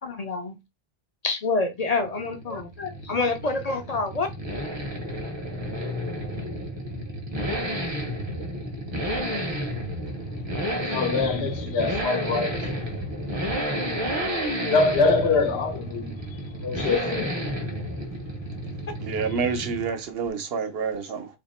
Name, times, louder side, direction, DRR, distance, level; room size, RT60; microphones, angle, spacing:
voice 1, 0.0-0.6 1.2-4.3, left 3 dB, 50° left, 0.5 m, -27 dB
Accelerating revving vroom, 1.8-20.0 20.3-20.4, equal, 30° right, 0.6 m, -31 dB
voice 2, 10.9-12.8 14.7-17.4, left 3 dB, 85° left, 0.9 m, -24 dB
voice 3, 19.0-21.3, right 5 dB, 75° right, 0.9 m, -28 dB
2.8 x 2.5 x 4.1 m
omnidirectional pair, 1.0 m